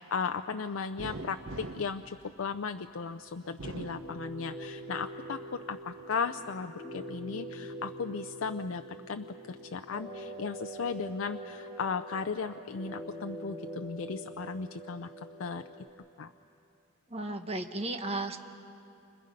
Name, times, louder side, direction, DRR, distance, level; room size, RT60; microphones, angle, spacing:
voice 1, 0.0-8.8 9.1-15.6 16.2-16.3, left 5 dB, 80° left, 8 dB, 0.5 m, -36 dB
sound 1, 1.0-2.9 3.4-4.8 5.2-6.1, right 2 dB, 85° right, 0.9 m, -44 dB
sound 2, 3.9-15.9, equal, 15° left, 2.6 m, -44 dB
voice 2, 17.1-18.4, right 2 dB, 30° right, 6 dB, 1.2 m, -34 dB
29.5 x 26.0 x 5.3 m, 2.6 s
head